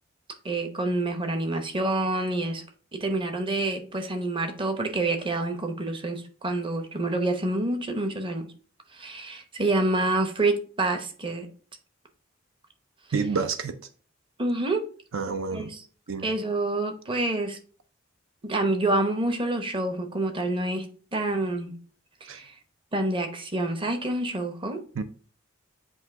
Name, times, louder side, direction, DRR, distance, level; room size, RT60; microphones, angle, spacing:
voice 1, 0.4-2.6 2.9-8.5 8.9-11.5 14.4-14.8 15.5-15.8 16.2-17.6 18.4-20.9 21.1-21.7 22.2-22.5 22.9-24.8, right 2 dB, 25° right, 0.8 m, -27 dB
voice 2, 13.1-13.8 15.1-15.7 16.1-16.3 22.3-22.4 25.0-25.1, right 5 dB, 70° right, 0.5 m, -28 dB
8.1 x 2.7 x 4.6 m
head